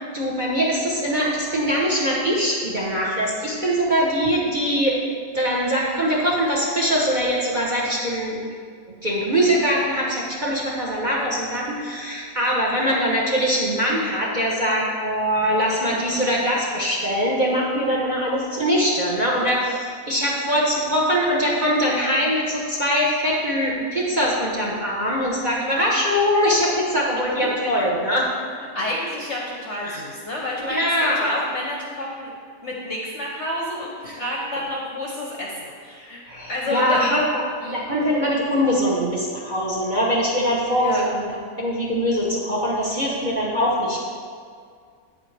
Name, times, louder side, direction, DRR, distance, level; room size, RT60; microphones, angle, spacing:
voice 1, 0.1-8.4 9.0-28.3 29.8-30.0 30.6-31.3 34.1-34.2 36.3-37.2 37.7-41.3 41.6-44.0, equal, 30° right, -4 dB, 1.0 m, -22 dB
voice 2, 15.9-16.2 27.6-27.7 28.7-32.3 32.6-36.2 36.5-37.0 37.6-37.8 40.8-41.0, left 1 dB, 50° left, -2 dB, 0.9 m, -29 dB
8.6 x 7.9 x 3.3 m, 2.1 s
omnidirectional pair, 1.9 m